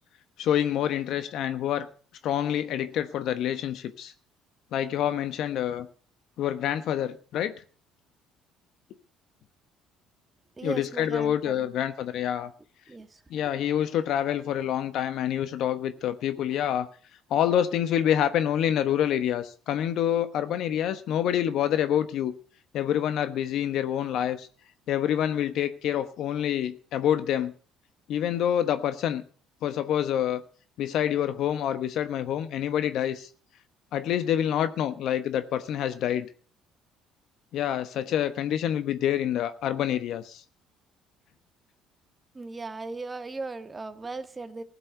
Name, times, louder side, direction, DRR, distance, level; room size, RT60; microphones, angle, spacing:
voice 1, 0.4-1.9 2.2-4.1 4.7-5.9 6.4-7.5 10.6-12.5 13.3-16.9 17.3-22.3 22.7-24.5 24.9-27.5 28.1-29.2 29.6-30.4 30.8-33.3 33.9-36.3 37.5-40.4, left 10 dB, 65° left, 1.2 m, -27 dB
voice 2, 10.6-11.7 12.9-13.2 42.3-44.6, right 3 dB, 20° right, 1.6 m, -37 dB
15.5 x 7.6 x 9.3 m
cardioid pair, 105°, 0 cm